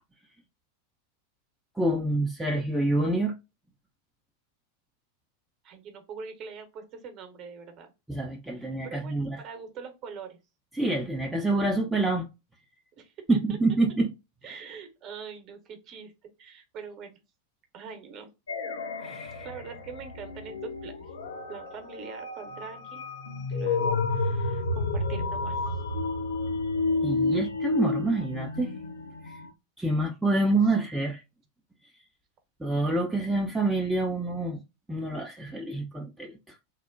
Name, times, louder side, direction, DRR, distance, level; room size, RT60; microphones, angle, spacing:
voice 1, 1.8-3.3 8.1-9.4 10.7-12.3 13.3-14.1 14.4-14.6 19.0-19.5 27.0-28.7 29.3-29.4 29.8-31.2 32.6-34.6 34.9-36.5, right 2 dB, 5° right, 0.4 m, -27 dB
voice 2, 5.6-8.2 8.6-10.4 12.9-13.6 14.4-17.2 17.7-18.3 19.4-21.1 21.5-23.1 23.5-25.8, right 6 dB, 35° right, 0.8 m, -43 dB
sound 1, 18.5-29.5, left 3 dB, 70° left, 0.5 m, -30 dB
3.0 x 2.1 x 2.4 m
figure-of-eight pair, 90°, 0 cm